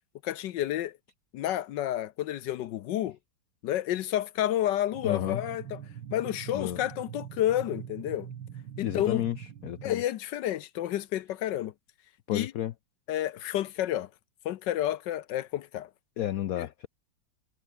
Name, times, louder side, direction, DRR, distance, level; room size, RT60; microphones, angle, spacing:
voice 1, 0.2-0.9 1.3-3.2 3.6-5.8 6.1-8.3 8.8-9.2 9.8-11.7 12.3-12.5 13.1-14.1 14.4-15.9 16.6-16.7, left 12 dB, 70° left, 1.3 m, -30 dB
sound 1, 4.9-9.9, right 9 dB, 75° right, 2.2 m, -43 dB
voice 2, 5.0-5.4 6.5-6.8 8.8-10.0 12.3-12.7 16.2-16.9, left 12 dB, 90° left, 0.7 m, -31 dB
omnidirectional pair, 2.2 m